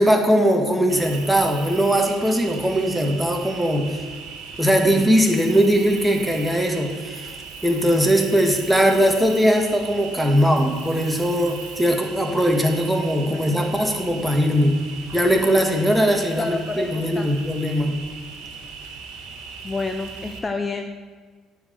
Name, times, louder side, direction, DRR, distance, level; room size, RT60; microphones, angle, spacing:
voice 1, 0.0-4.0 4.6-7.3 7.6-14.8 15.1-18.0, equal, 5° right, 2 dB, 1.7 m, -20 dB
Cricket, 0.9-20.4, right 5 dB, 85° right, 1.5 m, -38 dB
voice 2, 13.2-13.7 16.4-17.4 19.6-21.0, left 3 dB, 25° left, 6 dB, 0.7 m, -30 dB
9.8 x 4.9 x 7.9 m, 1.5 s
supercardioid pair, 85°, 0 cm